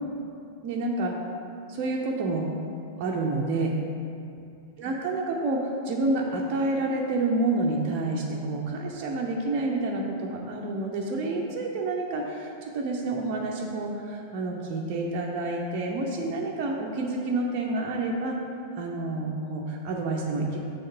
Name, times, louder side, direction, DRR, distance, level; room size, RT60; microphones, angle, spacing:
voice 1, 0.6-1.1 1.7-2.4 3.0-3.7 4.8-18.4 18.8-20.6, right 2 dB, 40° right, -1 dB, 0.6 m, -28 dB
6.4 x 3.5 x 5.7 m, 2.5 s
figure-of-eight pair, 90°, 0 cm